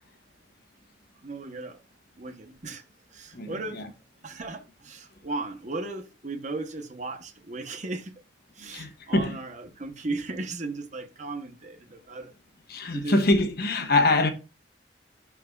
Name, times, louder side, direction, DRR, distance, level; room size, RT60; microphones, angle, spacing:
voice 1, 1.2-1.8 2.2-2.8 3.1-3.9 4.2-8.1 8.5-12.3 12.9-13.2, right 3 dB, 40° right, 1.0 m, -36 dB
voice 2, 3.3-3.8 8.7-9.4 12.7-14.3, left 2 dB, 55° left, 1.2 m, -24 dB
11.5 x 4.7 x 2.4 m
head